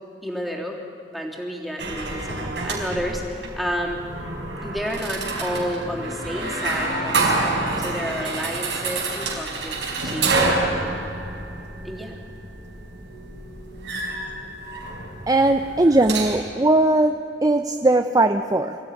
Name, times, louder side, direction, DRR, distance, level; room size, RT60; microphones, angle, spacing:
voice 1, 0.2-0.8 1.1-4.0 4.6-9.8 10.0-10.7 11.8-12.2, equal, ahead, -2 dB, 3.2 m, -30 dB
sound 1, 1.8-16.3, right 3 dB, 80° right, 4.9 m, -28 dB
voice 2, 15.3-18.8, right 2 dB, 20° right, 8 dB, 0.6 m, -19 dB
24.5 x 15.0 x 9.9 m, 2.6 s
head